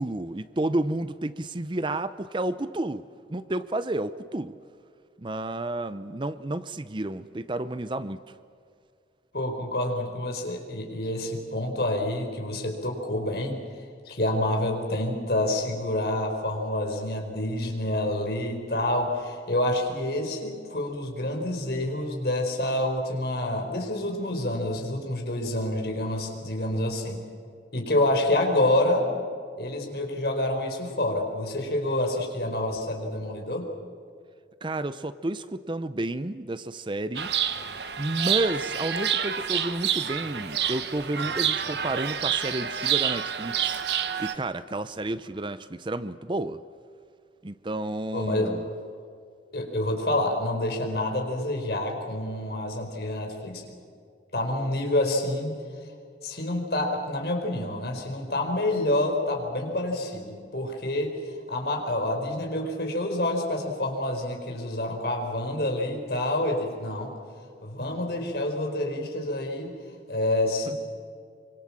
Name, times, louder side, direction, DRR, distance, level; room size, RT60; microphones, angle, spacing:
voice 1, 0.0-3.0 3.3-4.5 5.2-8.4 34.6-37.3 38.0-43.8 44.2-46.6 47.4-48.7, right 2 dB, 25° right, 14 dB, 0.6 m, -31 dB
voice 2, 9.3-13.6 14.0-27.2 27.7-29.1 29.6-33.7 48.1-48.6 49.5-53.7 54.3-55.6 56.2-61.2 61.5-67.1 67.6-69.7 70.1-70.7, left 1 dB, 60° left, 3 dB, 4.7 m, -28 dB
Chirp tweet, 37.2-44.4, right 9 dB, 70° right, 1.3 m, -28 dB
25.0 x 25.0 x 7.5 m, 2.4 s
head